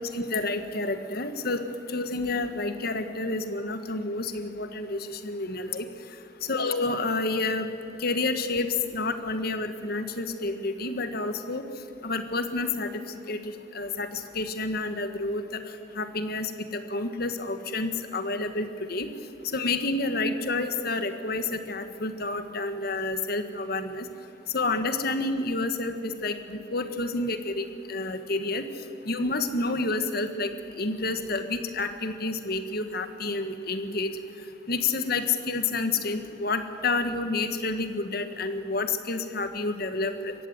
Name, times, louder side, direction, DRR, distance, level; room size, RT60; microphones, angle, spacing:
voice 1, 0.1-5.9 6.4-7.7 8.0-11.6 12.0-15.6 15.9-19.1 19.5-24.1 24.5-28.7 29.0-34.1 34.7-40.3, left 3 dB, 55° left, 9 dB, 1.5 m, -29 dB
22.0 x 16.0 x 9.4 m, 2.7 s
head